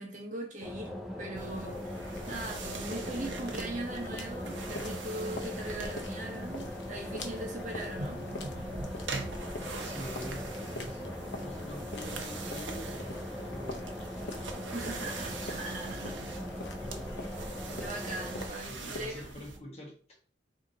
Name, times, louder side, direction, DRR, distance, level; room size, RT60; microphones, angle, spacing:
voice 1, 0.0-8.3 14.7-16.3 17.1-17.3 17.8-19.2, right 1 dB, 40° right, 0.9 m, -40 dB
sound 1, 0.6-18.5, left 1 dB, ahead, 0.5 m, -40 dB
sound 2, 1.3-19.6, right 3 dB, 80° right, 0.7 m, -43 dB
sound 3, 1.9-19.3, left 2 dB, 70° left, 0.7 m, -46 dB
voice 2, 9.6-14.0 14.9-16.0 16.7-17.7 18.7-20.2, equal, 35° left, 1.1 m, -46 dB
3.5 x 2.9 x 3.8 m
head